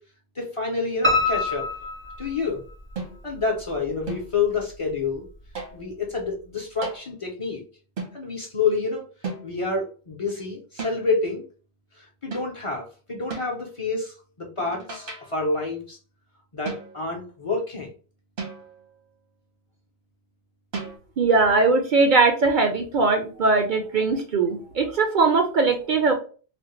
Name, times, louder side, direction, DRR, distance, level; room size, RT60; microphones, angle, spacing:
voice 1, 0.4-1.7 2.2-2.6 3.2-5.3 5.7-7.6 8.1-9.0 9.4-11.4 12.0-16.0 16.5-17.9, left 4 dB, 35° left, 0 dB, 0.6 m, -28 dB
Piano, 1.0-3.0 3.4-4.2 4.6-4.7 5.1-5.2 5.5-5.6, left 3 dB, 20° right, 0.3 m, -26 dB
sound 1, 3.0-3.4 4.1-4.4 5.5-5.9 6.8-7.1 8.0-8.3 9.2-9.7 10.8-11.2 12.3-12.6 13.3-13.6 14.6-15.4 16.6-17.2 18.4-18.9 20.7-21.0, right 4 dB, 80° right, 1.3 m, -36 dB
voice 2, 21.2-26.1, right 3 dB, 55° right, 4 dB, 0.6 m, -20 dB
3.3 x 2.1 x 3.0 m, 0.38 s
omnidirectional pair, 1.1 m